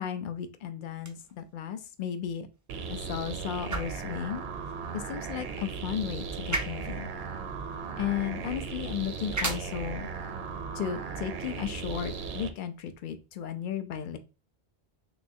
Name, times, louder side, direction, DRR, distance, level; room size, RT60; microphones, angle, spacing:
voice 1, 0.0-2.5 2.9-4.4 4.9-7.1 8.0-10.1 10.7-14.2, left 9 dB, 60° left, 9 dB, 0.6 m, -34 dB
sound 1, 0.9-12.9, right 2 dB, 30° right, 0.3 m, -41 dB
sound 2, 2.7-12.5, right 5 dB, 75° right, 0.8 m, -37 dB
3.4 x 3.4 x 2.6 m, 0.31 s
omnidirectional pair, 1.1 m